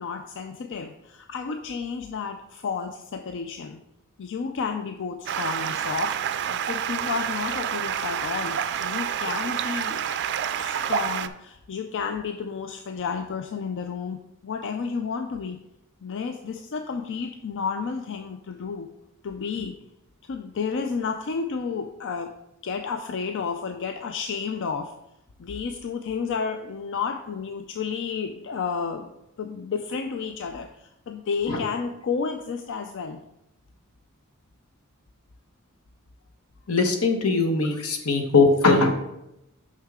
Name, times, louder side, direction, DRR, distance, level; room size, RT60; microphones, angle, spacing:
voice 1, 0.0-3.8 4.2-6.2 6.5-10.0 10.6-15.6 16.0-18.9 19.2-19.7 20.3-22.3 22.6-24.9 25.4-29.1 29.4-33.2, left 5 dB, 60° left, 5 dB, 0.4 m, -31 dB
Stream, 5.3-11.3, right 8 dB, 55° right, 0.4 m, -28 dB
voice 2, 36.7-38.9, left 3 dB, 80° left, 5 dB, 1.0 m, -20 dB
6.3 x 5.6 x 3.6 m, 0.85 s
head